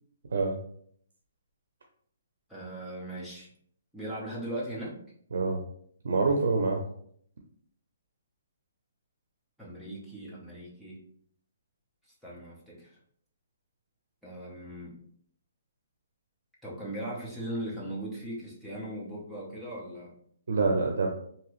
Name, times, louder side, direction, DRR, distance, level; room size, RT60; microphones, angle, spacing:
voice 1, 2.5-3.5 3.9-5.0 9.6-11.0 12.2-13.0 14.2-14.9 16.6-20.2, right 1 dB, ahead, -8 dB, 0.7 m, -38 dB
voice 2, 6.0-6.8 20.5-21.1, right 3 dB, 75° right, 2 dB, 0.5 m, -26 dB
2.9 x 2.6 x 3.0 m, 0.64 s
hypercardioid pair, 170°, 0 cm